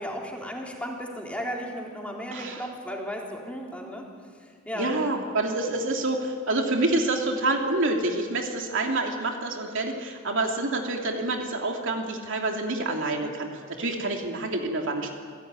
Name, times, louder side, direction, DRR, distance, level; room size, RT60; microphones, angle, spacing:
voice 1, 0.0-4.1 4.4-5.0, equal, 5° left, -1 dB, 3.8 m, -35 dB
voice 2, 2.3-2.6 4.7-15.1, right 2 dB, 65° right, 2 dB, 2.8 m, -27 dB
28.0 x 16.0 x 9.6 m, 2.1 s
head